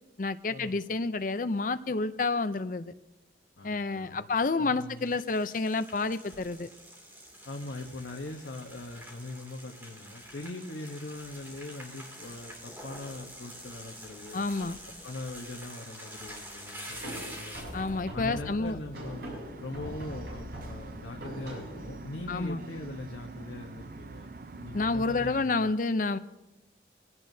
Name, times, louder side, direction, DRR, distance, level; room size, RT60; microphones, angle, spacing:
voice 1, 0.2-2.9 3.6-6.7 14.3-14.8 17.7-18.8 22.3-22.6 24.7-26.2, left 3 dB, 45° left, 12 dB, 0.5 m, -29 dB
voice 2, 3.6-4.3 4.6-5.1 7.4-14.5 15.0-17.7 18.1-25.7, left 2 dB, 80° left, 2 dB, 1.1 m, -41 dB
sound 1, 4.9-17.9, equal, 10° right, 2.6 m, -46 dB
sound 2, 16.9-22.4, equal, 70° right, 6.5 m, -42 dB
sound 3, 18.9-25.4, right 2 dB, 50° right, 0.6 m, -45 dB
23.0 x 16.5 x 2.7 m, 0.99 s
head